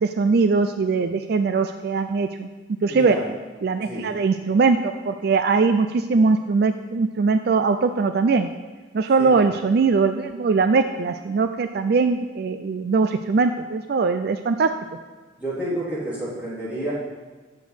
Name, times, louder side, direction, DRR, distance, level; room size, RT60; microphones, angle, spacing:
voice 1, 0.0-2.5 2.8-3.2 3.6-8.5 8.9-14.7, right 4 dB, 55° right, 9 dB, 0.4 m, -21 dB
voice 2, 2.9-3.3 3.8-4.1 9.2-9.4 15.4-16.9, right 1 dB, 10° right, -10 dB, 3.8 m, -29 dB
8.3 x 7.0 x 6.2 m, 1.3 s
head